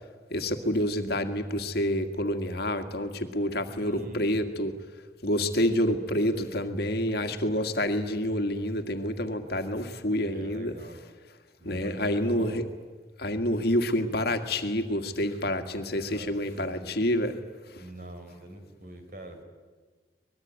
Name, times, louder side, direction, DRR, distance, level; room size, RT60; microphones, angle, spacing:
voice 1, 0.3-4.7 5.2-10.7 11.6-12.6 13.2-17.4, left 1 dB, 60° left, 7 dB, 1.9 m, -28 dB
voice 2, 3.7-4.5 10.2-11.0 11.6-12.6 16.1-17.0 17.8-19.4, right 1 dB, 50° right, 7 dB, 4.1 m, -44 dB
24.5 x 21.0 x 9.4 m, 1.4 s
head